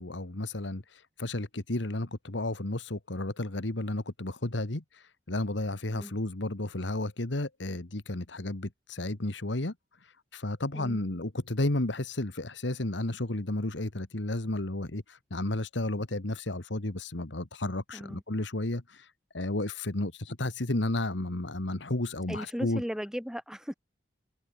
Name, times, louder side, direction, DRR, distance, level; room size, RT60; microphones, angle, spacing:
voice 1, 0.0-9.7 10.3-19.1 19.3-22.8, left 1 dB, 70° left, 1.8 m, -32 dB
voice 2, 22.3-23.7, equal, 5° right, 7.3 m, -36 dB
head